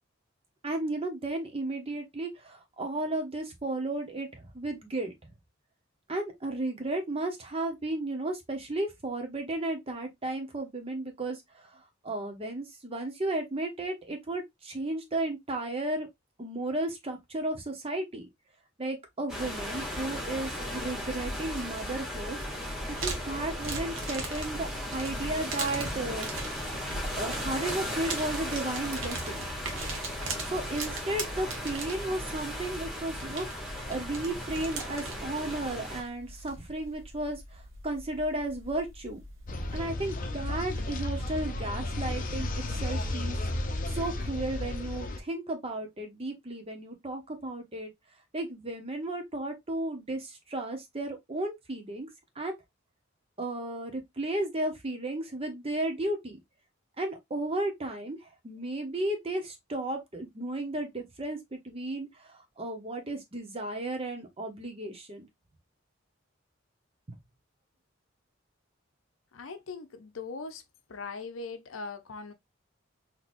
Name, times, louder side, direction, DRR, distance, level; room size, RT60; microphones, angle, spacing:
voice 1, 0.6-5.1 6.1-11.7 12.0-16.1 16.4-18.3 18.8-22.4 22.9-26.3 27.2-29.5 30.5-39.2 39.7-43.4 43.9-47.9 48.3-52.1 52.4-52.5 53.4-56.4 57.0-58.2 58.4-65.3, right 2 dB, 30° right, 1.0 m, -34 dB
sound 1, 19.3-36.0, equal, 5° right, 1.7 m, -36 dB
sound 2, 20.8-39.8, right 3 dB, 75° right, 1.1 m, -41 dB
sound 3, 39.5-45.2, left 1 dB, 45° left, 0.7 m, -33 dB
voice 2, 69.3-70.6 70.9-72.3, left 4 dB, 85° left, 0.7 m, -40 dB
4.0 x 2.9 x 2.6 m
head